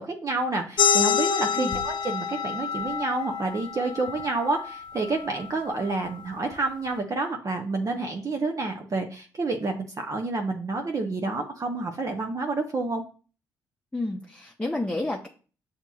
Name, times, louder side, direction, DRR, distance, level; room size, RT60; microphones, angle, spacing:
voice 1, 0.0-13.0, right 3 dB, 40° right, 2 dB, 0.8 m, -29 dB
sound 1, 0.8-5.9, left 8 dB, 60° left, 0.4 m, -27 dB
voice 2, 13.9-15.3, left 2 dB, 10° left, 1 dB, 0.7 m, -30 dB
8.0 x 2.8 x 2.3 m, 0.38 s
hypercardioid pair, 45°, 9 cm